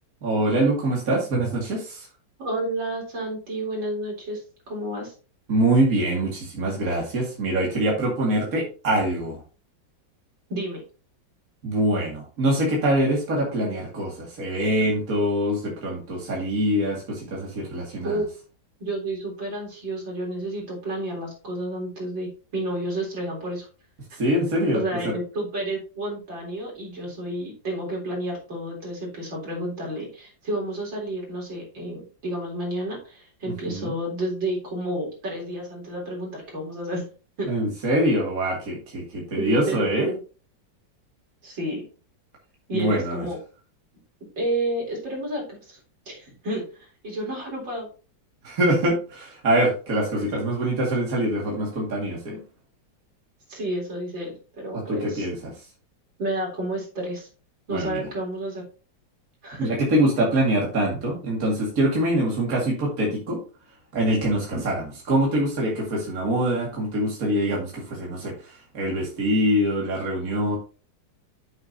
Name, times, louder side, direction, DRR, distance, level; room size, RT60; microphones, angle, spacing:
voice 1, 0.2-2.1 5.5-9.4 11.6-18.2 24.1-25.1 33.7-33.9 37.5-40.1 42.7-43.2 48.4-52.4 54.7-55.5 57.7-58.0 59.6-63.4 63.9-70.6, right 1 dB, 50° right, -2 dB, 2.6 m, -24 dB
voice 2, 2.4-5.1 10.5-10.8 18.0-18.3 18.8-23.7 24.7-37.1 37.4-37.5 39.4-40.2 41.4-41.8 42.7-43.4 44.4-45.8 46.1-47.9 53.5-55.3 56.2-57.3 57.7-58.6 59.4-59.7, right 1 dB, 75° right, -2 dB, 4.4 m, -30 dB
9.0 x 7.7 x 2.8 m, 0.36 s
omnidirectional pair, 2.0 m